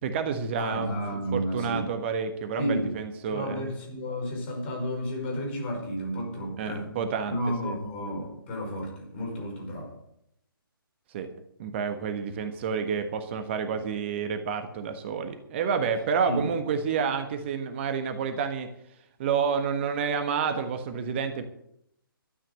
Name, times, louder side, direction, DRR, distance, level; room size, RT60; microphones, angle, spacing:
voice 1, 0.0-3.7 6.6-7.4 7.6-7.8 11.1-11.3 11.6-18.7 19.2-21.4, right 6 dB, 30° right, 7 dB, 1.4 m, -29 dB
voice 2, 0.6-1.9 2.6-3.0 3.3-6.9 7.3-9.9 16.3-16.5, equal, 30° left, 1 dB, 5.3 m, -32 dB
12.5 x 9.0 x 8.3 m, 0.75 s
figure-of-eight pair, 135°, 12 cm